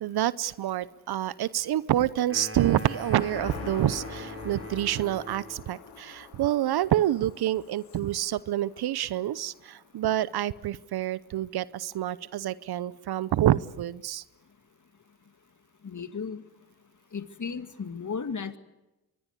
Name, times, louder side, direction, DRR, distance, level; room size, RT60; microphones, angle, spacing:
voice 1, 0.0-14.2, right 12 dB, 70° right, 20 dB, 0.8 m, -27 dB
sound 1, 2.3-5.7, right 1 dB, 30° right, 7.5 m, -42 dB
sound 2, 2.8-9.6 10.0-10.1, left 6 dB, 75° left, 3.1 m, -44 dB
voice 2, 15.8-16.4 17.1-18.6, left 5 dB, 45° left, 10 dB, 2.1 m, -35 dB
24.0 x 21.5 x 8.2 m, 1.0 s
supercardioid pair, 40°, 40 cm